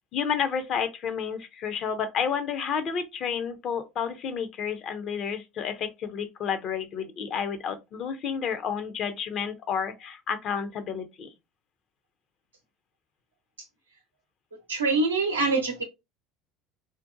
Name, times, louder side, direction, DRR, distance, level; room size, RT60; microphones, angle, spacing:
voice 1, 0.1-11.3, left 7 dB, 50° left, 0.5 m, -30 dB
voice 2, 14.7-15.8, right 3 dB, 90° right, 0.7 m, -24 dB
2.5 x 2.1 x 2.5 m
hypercardioid pair, 70°, 0 cm